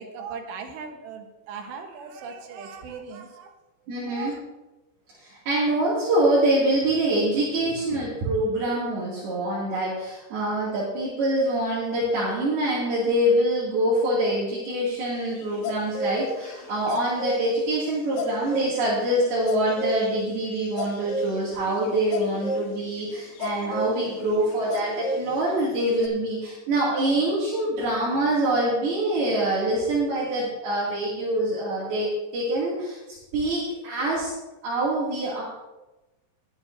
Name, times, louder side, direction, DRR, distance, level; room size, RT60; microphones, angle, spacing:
voice 1, 0.0-3.5 4.1-4.4, right 5 dB, 80° right, 4 dB, 3.5 m, -38 dB
voice 2, 3.9-4.3 5.2-33.0 33.3-34.3 34.6-35.4, right 1 dB, 65° right, -8 dB, 4.4 m, -25 dB
sound 1, 15.3-17.4 17.8-17.9 18.2-26.1, left 1 dB, 70° left, 3.1 m, -32 dB
21.0 x 10.0 x 2.7 m, 1.0 s
omnidirectional pair, 4.9 m